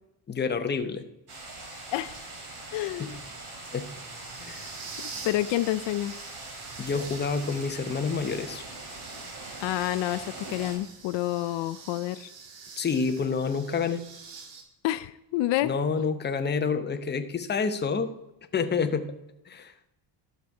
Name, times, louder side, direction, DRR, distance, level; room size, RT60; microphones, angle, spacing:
voice 1, 0.3-1.0 3.0-3.1 3.7-3.9 4.4-4.7 6.8-8.6 12.8-14.0 15.6-18.1 18.5-19.1 19.5-19.7, left 5 dB, 25° left, 8 dB, 0.8 m, -28 dB
sound 1, 1.3-10.8, right 2 dB, 55° right, 3.3 m, -42 dB
sound 2, 1.5-14.6, right 5 dB, 80° right, 2.0 m, -47 dB
voice 2, 2.7-3.2 5.0-6.1 9.6-12.3 14.8-15.7 16.0-16.2, left 15 dB, 70° left, 13 dB, 0.6 m, -29 dB
12.0 x 6.9 x 4.7 m, 0.91 s
cardioid pair, 130°, 45 cm